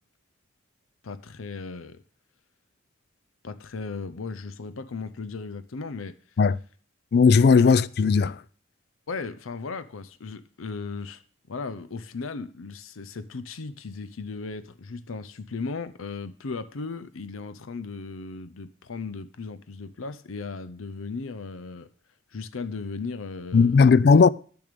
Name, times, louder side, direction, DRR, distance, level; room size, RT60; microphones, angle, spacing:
voice 1, 1.0-2.0 3.4-6.2 7.6-7.7 9.1-11.2 11.5-21.9 22.3-23.8, left 4 dB, 90° left, 0.6 m, -36 dB
voice 2, 7.1-8.4 23.5-24.3, left 5 dB, 50° left, 0.3 m, -17 dB
10.5 x 7.0 x 5.1 m
head